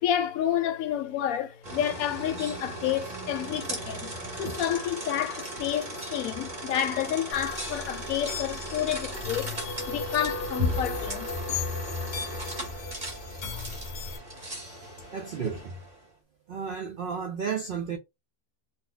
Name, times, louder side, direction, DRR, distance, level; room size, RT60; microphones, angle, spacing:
voice 1, 0.0-9.5 9.9-11.3 13.6-13.7, left 10 dB, 75° left, 1.0 m, -30 dB
sound 1, 1.6-16.0, right 1 dB, 35° right, 1.2 m, -37 dB
sound 2, 7.3-14.2, left 4 dB, 45° left, 0.6 m, -36 dB
voice 2, 14.3-16.0 16.5-18.0, right 6 dB, 90° right, 0.4 m, -34 dB
2.7 x 2.2 x 3.8 m
omnidirectional pair, 1.5 m